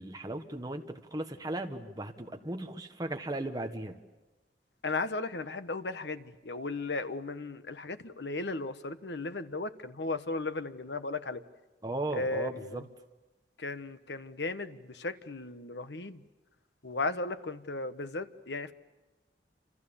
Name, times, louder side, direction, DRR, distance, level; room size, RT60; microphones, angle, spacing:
voice 1, 0.0-4.0 11.8-12.8, right 1 dB, 20° right, 4 dB, 1.5 m, -37 dB
voice 2, 4.8-11.4 12.1-12.8 13.6-16.2 16.8-18.7, left 3 dB, 70° left, 11 dB, 1.3 m, -36 dB
29.5 x 27.5 x 7.1 m, 1.1 s
head